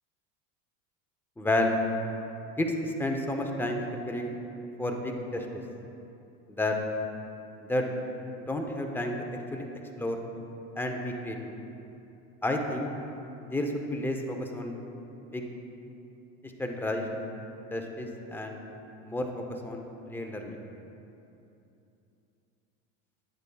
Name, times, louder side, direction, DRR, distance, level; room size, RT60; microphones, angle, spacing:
voice 1, 1.4-1.8 2.6-4.4 4.8-5.6 6.5-6.8 7.7-7.9 8.5-9.2 9.5-9.6 10.0-10.2 10.8-11.5 12.4-12.9 13.5-14.8 15.3-15.4 16.4-17.1 17.7-18.6 19.0-19.3 19.6-19.8 20.1-20.6, left 1 dB, 5° left, 2 dB, 0.7 m, -31 dB
10.0 x 8.6 x 2.3 m, 2.8 s
supercardioid pair, 110°, 37 cm